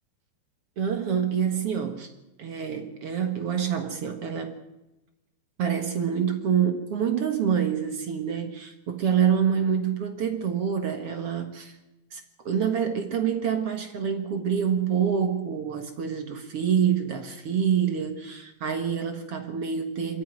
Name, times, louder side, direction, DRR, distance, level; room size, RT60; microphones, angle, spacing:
voice 1, 0.8-2.1 2.4-4.6 5.6-11.8 12.1-20.2, right 8 dB, 50° right, 6 dB, 2.0 m, -26 dB
24.5 x 13.5 x 9.4 m, 1.0 s
omnidirectional pair, 4.0 m